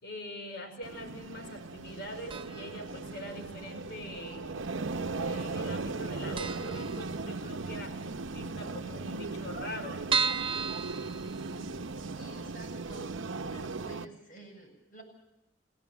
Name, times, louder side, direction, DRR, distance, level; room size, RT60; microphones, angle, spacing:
voice 1, 0.0-4.6 5.2-8.0 8.3-10.0, left 1 dB, 60° left, 6 dB, 5.0 m, -43 dB
sound 1, 0.8-14.1, right 3 dB, 90° right, 0.9 m, -38 dB
sound 2, 2.3-2.8 3.1-3.2 4.1-4.8 5.1-5.3 5.6-5.7 6.0-6.1 6.4-7.7 8.1-8.2 8.4-8.5 8.7-8.8 9.3-11.9 12.4-12.5 12.9-13.0, right 5 dB, 30° right, 0.7 m, -34 dB
voice 2, 12.1-15.0, right 2 dB, 45° left, 4 dB, 7.6 m, -50 dB
28.0 x 17.5 x 7.2 m, 0.93 s
head